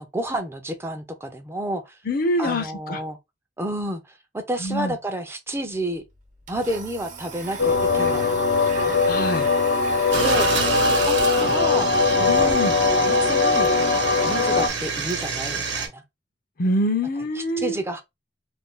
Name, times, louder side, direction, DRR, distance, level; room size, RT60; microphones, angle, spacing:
voice 1, 0.0-1.9 2.4-3.2 3.6-6.0 6.5-8.3 8.6-9.0 10.1-10.5 11.0-11.9 12.2-12.6 13.0-13.7 14.2-16.0 17.2-18.0, right 1 dB, 15° right, 0.5 m, -30 dB
voice 2, 2.1-3.0 4.6-4.9 9.1-9.5 12.3-12.7 16.6-17.8, left 1 dB, 50° left, 0.5 m, -25 dB
Domestic sounds home sounds, 5.5-5.6 5.9-12.5, right 5 dB, 45° right, 0.8 m, -37 dB
sound 1, 7.6-14.7, left 4 dB, 90° left, 0.7 m, -20 dB
sound 2, 10.1-15.9, right 5 dB, 85° right, 0.9 m, -28 dB
2.5 x 2.2 x 3.6 m
head